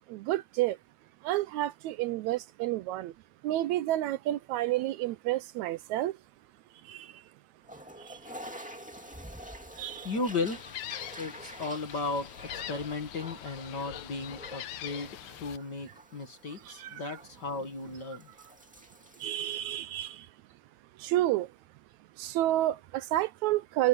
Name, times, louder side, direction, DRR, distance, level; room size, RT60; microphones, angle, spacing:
voice 1, 0.1-0.8 1.2-3.1 3.4-6.1 6.9-7.1 8.1-8.2 9.8-10.1 16.7-17.0 19.2-20.3 21.0-21.5 22.2-23.9, right 15 dB, 80° right, 1.9 m, -30 dB
Toilet flush, 7.6-19.6, equal, 5° right, 1.6 m, -48 dB
voice 2, 10.0-10.6 11.2-18.3, left 3 dB, 40° left, 2.0 m, -35 dB
Gull seagull, 10.5-15.6, left 13 dB, 75° left, 2.2 m, -43 dB
omnidirectional pair, 3.5 m